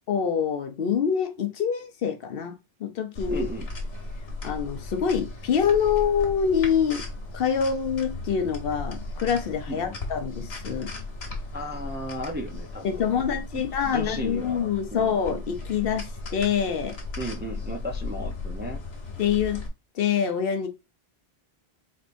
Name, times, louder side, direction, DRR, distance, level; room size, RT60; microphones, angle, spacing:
voice 1, 0.1-2.5 2.8-3.4 4.4-7.0 7.3-10.9 12.8-17.0 19.2-19.6 19.9-20.7, left 7 dB, 70° left, 0.8 m, -25 dB
sound 1, 3.2-19.7, left 2 dB, 85° left, 1.3 m, -36 dB
voice 2, 3.3-3.7 9.7-10.0 11.5-13.1 13.5-15.2 17.2-18.8, equal, 15° right, 0.4 m, -35 dB
4.5 x 3.2 x 2.5 m
omnidirectional pair, 1.0 m